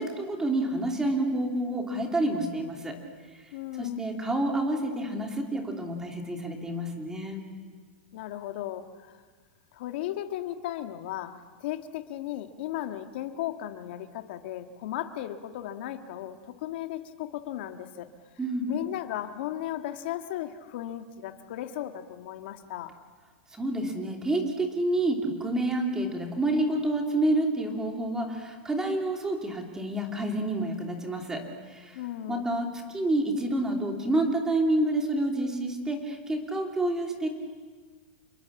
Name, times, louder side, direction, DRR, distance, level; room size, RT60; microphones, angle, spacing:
voice 1, 0.0-3.0 3.8-7.4 18.4-18.7 23.5-32.0 32.3-37.3, right 1 dB, 10° right, 2 dB, 3.0 m, -28 dB
voice 2, 3.5-4.0 8.1-9.1 9.7-18.1 18.7-22.9 31.9-32.4, left 12 dB, 65° left, 6 dB, 1.8 m, -36 dB
27.5 x 21.5 x 7.3 m, 1.5 s
supercardioid pair, 145°, 6 cm